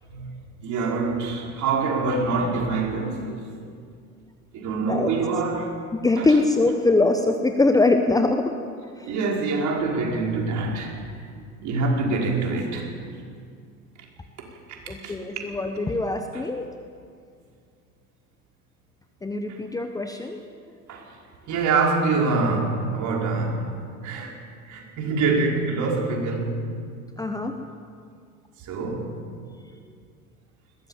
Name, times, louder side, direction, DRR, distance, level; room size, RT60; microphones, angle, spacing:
voice 1, 0.0-3.5 4.5-5.7 6.2-6.4 9.0-11.0 11.6-12.9 14.7-14.8 15.0-15.2 16.3-16.4 19.5-19.6 20.9-21.2 21.5-23.7 24.0-24.3 24.6-26.7 28.6-29.2, right 3 dB, 40° right, -1 dB, 5.2 m, -25 dB
voice 2, 5.9-8.5 9.0-9.1 14.9-16.7 19.2-20.4 24.1-24.2 27.2-27.6, left 2 dB, 10° left, 6 dB, 1.1 m, -22 dB
21.5 x 18.5 x 7.4 m, 2.2 s
figure-of-eight pair, 80°, 46 cm